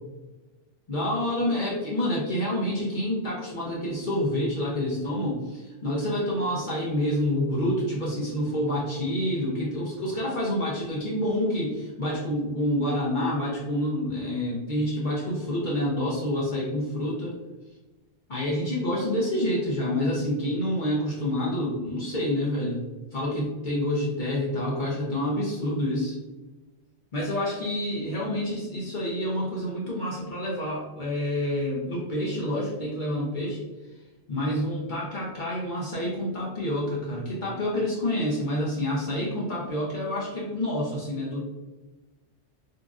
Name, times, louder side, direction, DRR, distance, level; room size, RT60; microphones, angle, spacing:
voice 1, 0.9-17.3 18.3-22.8 23.1-26.2 27.1-33.6 34.3-41.4, left 1 dB, 45° left, -6 dB, 0.8 m, -28 dB
4.0 x 2.5 x 2.3 m, 1.1 s
omnidirectional pair, 1.3 m